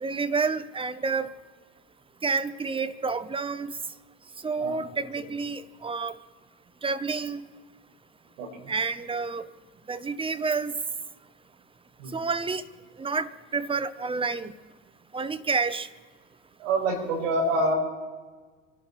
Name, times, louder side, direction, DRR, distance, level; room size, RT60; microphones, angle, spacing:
voice 1, 0.0-1.3 2.2-3.8 4.4-6.2 6.8-7.5 8.7-9.5 9.9-10.7 12.1-12.6 13.0-14.5 15.1-15.9, right 4 dB, 15° right, 14 dB, 0.8 m, -29 dB
voice 2, 8.4-8.7 12.0-12.1 16.6-17.7, right 2 dB, 70° right, 1 dB, 5.6 m, -26 dB
25.5 x 12.0 x 4.2 m, 1.4 s
hypercardioid pair, 90°, 39 cm